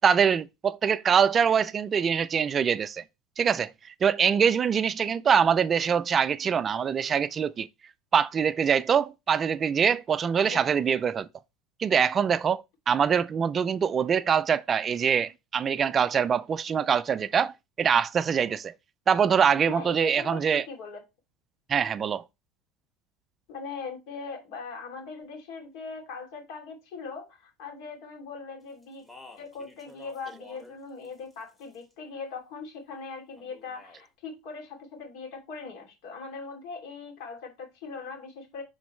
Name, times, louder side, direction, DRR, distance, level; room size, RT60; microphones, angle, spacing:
voice 1, 0.0-3.0 3.4-3.7 4.0-7.7 8.1-11.3 11.8-18.7 19.1-20.7 21.7-22.2, right 7 dB, 25° right, 0.3 m, -24 dB
voice 2, 19.7-21.0 23.5-29.0 29.4-38.6, left 4 dB, 70° left, 2.8 m, -40 dB
Speech, 28.8-30.8 31.0-31.9 33.4-34.0, left 2 dB, 10° left, 1.6 m, -51 dB
9.9 x 3.9 x 3.2 m
cardioid pair, 145°, 0 cm